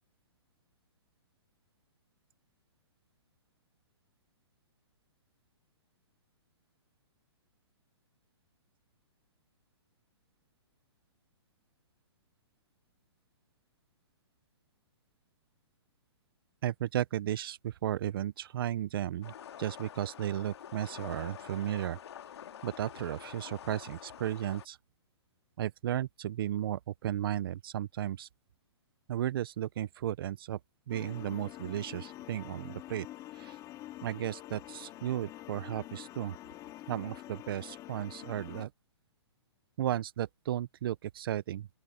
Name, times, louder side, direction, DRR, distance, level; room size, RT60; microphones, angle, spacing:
voice 1, 16.6-19.3 19.6-22.0 22.6-24.8 25.6-28.3 29.1-30.6 30.9-33.1 33.3-33.6 34.0-36.3 36.9-38.7 39.8-41.7, right 12 dB, 50° right, 0.7 m, -34 dB
sound 1, 19.2-24.7, left 10 dB, 65° left, 2.1 m, -47 dB
sound 2, 30.9-38.7, left 15 dB, 25° left, 2.3 m, -47 dB
open air
hypercardioid pair, 150°, 15 cm